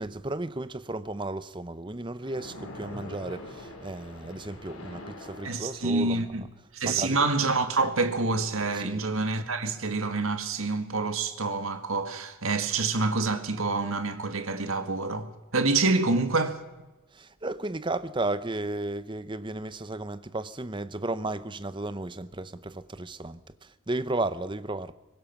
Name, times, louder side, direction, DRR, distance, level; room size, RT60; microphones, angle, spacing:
voice 1, 0.0-6.4 6.8-7.3 8.7-9.1 17.1-24.9, right 2 dB, 20° right, 0.7 m, -34 dB
Splash splatter, 2.2-6.2, left 1 dB, 70° left, 4.4 m, -44 dB
voice 2, 5.4-6.4 6.7-16.6, right 3 dB, 65° right, 1.9 m, -27 dB
23.5 x 20.0 x 6.0 m
head